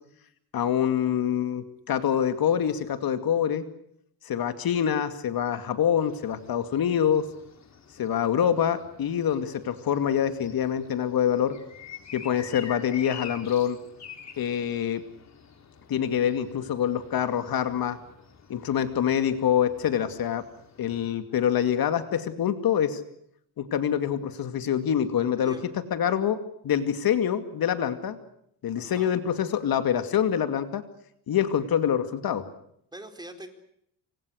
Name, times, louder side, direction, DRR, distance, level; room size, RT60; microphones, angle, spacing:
voice 1, 0.5-3.6 4.3-7.3 8.0-11.6 12.1-13.8 14.4-15.0 15.9-18.0 18.5-20.4 20.8-23.0 23.6-26.4 26.6-28.2 28.6-30.8 31.3-32.5, left 9 dB, 60° left, 9 dB, 2.4 m, -25 dB
sound 1, 6.0-21.1, left 7 dB, 40° left, 4.0 m, -48 dB
voice 2, 25.3-25.6 28.8-29.2 32.9-33.5, right 1 dB, 10° right, 6 dB, 4.2 m, -43 dB
28.0 x 25.5 x 6.5 m, 0.72 s
cardioid pair, 125°, 40 cm